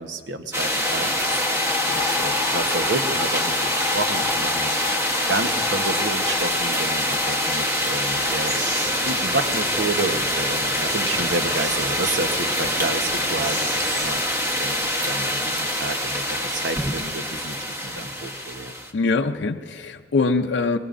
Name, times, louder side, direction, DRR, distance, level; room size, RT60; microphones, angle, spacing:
voice 1, 0.0-4.8 5.3-18.7, right 2 dB, 80° right, 6 dB, 1.0 m, -30 dB
sound 1, 0.5-18.9, equal, 15° right, 1.1 m, -25 dB
sound 2, 0.6-9.7, left 6 dB, 10° left, 1.1 m, -32 dB
sound 3, 8.4-14.1, right 1 dB, 45° right, 4.8 m, -35 dB
voice 2, 18.9-20.8, left 3 dB, 70° left, 5 dB, 0.5 m, -23 dB
23.0 x 20.0 x 2.6 m, 2.1 s
head